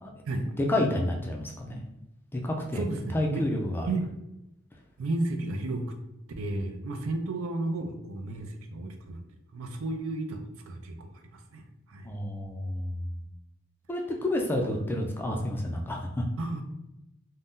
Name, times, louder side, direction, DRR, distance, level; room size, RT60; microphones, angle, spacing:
voice 1, 0.4-1.8 2.3-2.8 3.1-3.9 12.0-13.2 13.9-16.2, left 1 dB, 10° left, 0 dB, 0.4 m, -30 dB
voice 2, 2.7-3.5 3.9-4.1 5.0-5.9 6.4-9.2 9.5-12.1 16.4-16.6, right 2 dB, 75° right, 5 dB, 0.4 m, -33 dB
2.6 x 2.1 x 3.5 m, 0.89 s
head